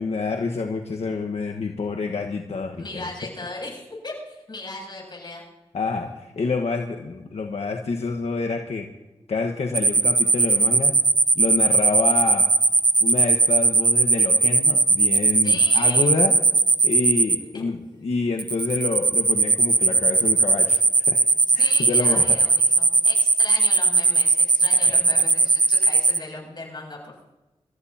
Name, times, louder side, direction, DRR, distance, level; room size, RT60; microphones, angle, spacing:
voice 1, 0.0-3.0 5.7-8.9 9.3-10.9 11.3-12.5 13.0-16.4 16.8-21.2 21.5-22.4 24.7-25.2, left 4 dB, 80° left, 2 dB, 1.3 m, -27 dB
voice 2, 2.8-5.5 15.4-16.1 17.5-17.6 21.5-27.3, left 2 dB, 45° left, -1 dB, 7.2 m, -37 dB
sound 1, 9.7-17.4 18.4-26.2, right 3 dB, 40° right, 1.0 m, -18 dB
27.5 x 14.5 x 2.9 m, 1.0 s
wide cardioid pair, 75°, 11 cm